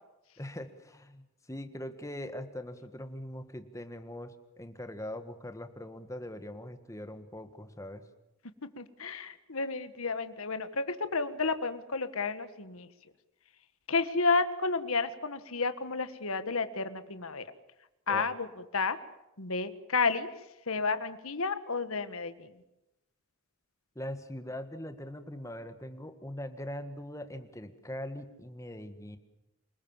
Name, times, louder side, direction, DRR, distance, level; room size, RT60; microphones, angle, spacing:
voice 1, 0.4-8.1 18.1-18.3 23.9-29.2, left 1 dB, 15° left, 8 dB, 1.7 m, -41 dB
voice 2, 8.8-12.9 13.9-17.5 18.1-18.5 18.7-19.0 19.4-20.3 20.7-22.6, left 4 dB, 75° left, 11 dB, 1.6 m, -31 dB
27.5 x 20.0 x 7.3 m, 0.93 s
head